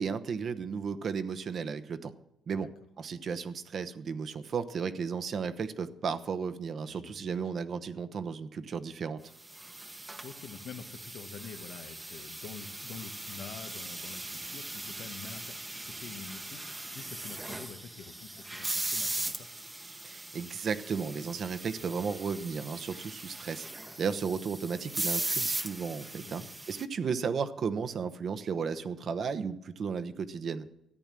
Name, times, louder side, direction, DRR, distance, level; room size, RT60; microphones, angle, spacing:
voice 1, 0.0-2.1 2.5-2.7 3.0-9.2 20.0-23.7 24.0-26.4 26.7-30.7, right 6 dB, 55° right, 10 dB, 1.0 m, -34 dB
voice 2, 6.8-7.4 10.2-19.5 21.7-22.0 26.2-26.5, left 7 dB, 80° left, 8 dB, 1.2 m, -47 dB
sound 1, 9.4-26.8, right 2 dB, 15° right, 1.0 m, -39 dB
14.0 x 9.0 x 7.5 m, 0.87 s
cardioid pair, 90°, 0 cm